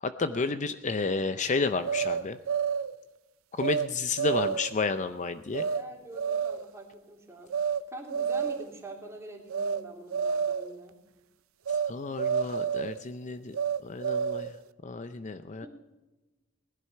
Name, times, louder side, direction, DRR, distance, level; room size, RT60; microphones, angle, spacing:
voice 1, 0.0-2.4 3.6-5.7 11.9-13.6 13.8-14.5 14.8-15.7, left 4 dB, 35° left, 10 dB, 0.6 m, -31 dB
sound 1, 1.8-2.9 3.6-3.9 4.2-4.8 5.5-5.8 6.1-6.7 7.5-7.8 8.1-8.7 9.5-9.8 10.1-10.7 11.7-11.9 12.2-13.0 13.5-14.6, right 7 dB, 80° right, 0.5 m, -29 dB
voice 2, 4.2-4.5 5.7-11.0 15.6-15.7, right 1 dB, 15° right, 0 dB, 3.0 m, -45 dB
19.5 x 11.0 x 5.7 m, 1.2 s
head